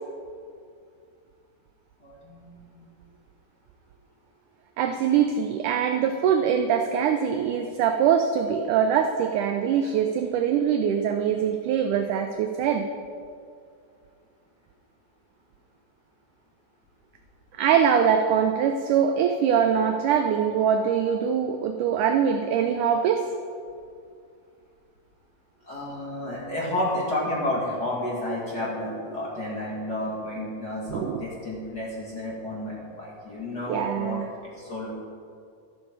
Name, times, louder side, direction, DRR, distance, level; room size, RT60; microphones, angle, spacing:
voice 1, 2.0-2.9 25.7-34.9, left 1 dB, 35° left, -5 dB, 2.0 m, -31 dB
voice 2, 4.8-12.9 17.6-23.3 30.9-31.2 33.7-34.3, right 8 dB, 85° right, 6 dB, 1.8 m, -23 dB
13.0 x 11.5 x 4.6 m, 2.3 s
omnidirectional pair, 4.3 m